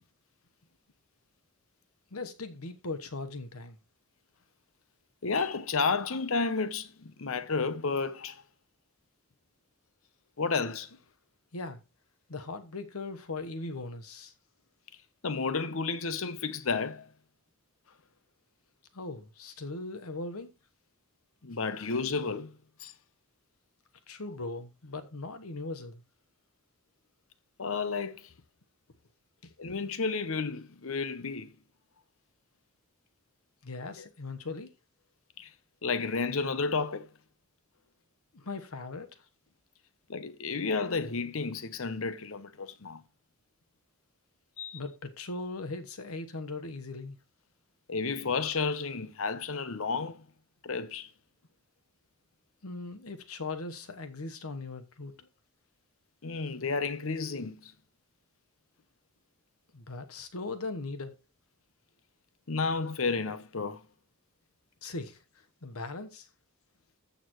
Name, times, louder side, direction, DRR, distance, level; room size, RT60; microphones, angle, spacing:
voice 1, 2.1-3.8 11.5-11.8 12.3-14.3 18.9-20.5 24.1-26.0 33.6-34.7 38.3-39.1 44.7-47.2 52.6-55.3 59.7-61.1 64.8-66.3, left 3 dB, 80° left, 1.2 m, -39 dB
voice 2, 5.2-8.4 10.4-10.9 15.2-17.1 21.4-22.5 22.8-22.9 27.6-28.3 29.6-31.5 34.0-34.1 35.4-35.5 35.8-37.1 40.1-43.0 44.6-44.8 47.9-50.3 50.6-51.1 56.2-57.7 62.5-63.8, left 4 dB, 65° left, 0.9 m, -31 dB
14.0 x 6.8 x 3.1 m
head